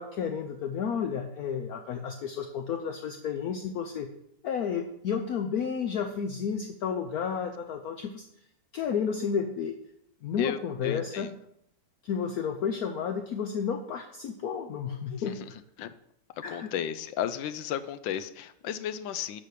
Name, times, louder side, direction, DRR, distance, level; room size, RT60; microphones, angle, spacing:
voice 1, 0.0-4.1 4.4-8.2 8.7-9.8 10.2-11.3 12.0-15.5 16.4-16.7, left 7 dB, 65° left, 5 dB, 1.0 m, -32 dB
voice 2, 10.4-11.3 15.3-15.4 15.8-15.9 16.5-19.4, left 9 dB, 85° left, 12 dB, 1.4 m, -33 dB
11.5 x 4.2 x 6.5 m, 0.76 s
omnidirectional pair, 2.0 m